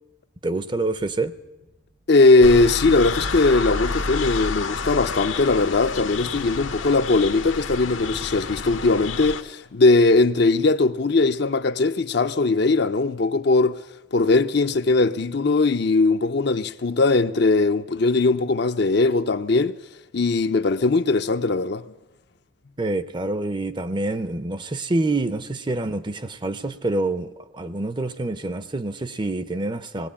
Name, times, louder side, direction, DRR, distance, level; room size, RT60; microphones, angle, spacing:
voice 1, 0.4-1.3 22.8-30.1, right 2 dB, 25° right, 0.6 m, -27 dB
sound 1, 1.1-5.3 5.8-6.7, right 1 dB, 85° right, 2.5 m, -44 dB
voice 2, 2.1-13.8 14.1-19.7 20.1-21.8, left 3 dB, 55° left, 0.6 m, -19 dB
sound 2, 2.4-9.4, left 4 dB, 75° left, 1.0 m, -29 dB
19.5 x 16.0 x 8.6 m
head